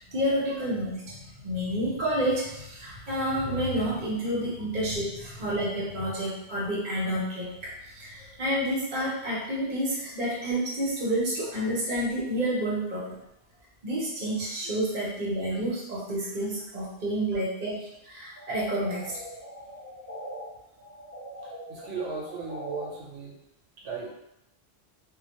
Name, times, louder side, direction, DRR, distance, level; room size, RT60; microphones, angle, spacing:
voice 1, 0.1-13.2 13.8-19.1, right 1 dB, 50° right, -6 dB, 0.7 m, -29 dB
sound 1, 18.4-20.4 20.8-22.8, equal, 10° right, 0.9 m, -42 dB
voice 2, 21.4-23.4 23.8-24.1, right 5 dB, 90° right, -3 dB, 0.9 m, -36 dB
2.1 x 2.1 x 2.8 m, 0.82 s
omnidirectional pair, 1.1 m